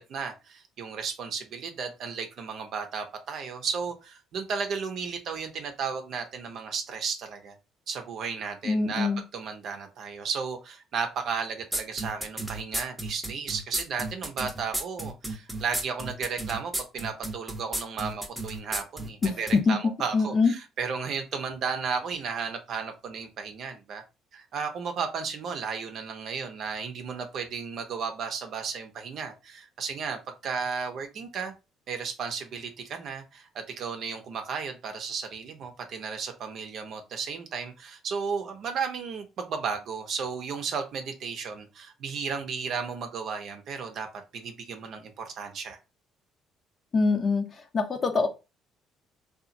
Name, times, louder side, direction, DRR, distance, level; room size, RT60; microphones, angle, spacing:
voice 1, 0.0-7.6 7.9-24.0 24.3-31.5 31.9-44.1 44.3-45.8, right 5 dB, 65° right, 5 dB, 0.6 m, -34 dB
voice 2, 8.6-9.2 19.2-19.3 19.7-19.8 20.1-20.5 46.9-47.4 47.7-48.3, left 4 dB, 45° left, 7 dB, 0.6 m, -23 dB
sound 1, 11.7-19.6, right 1 dB, 5° right, 0.8 m, -33 dB
2.8 x 2.4 x 2.5 m, 0.27 s
supercardioid pair, 65°, 0 cm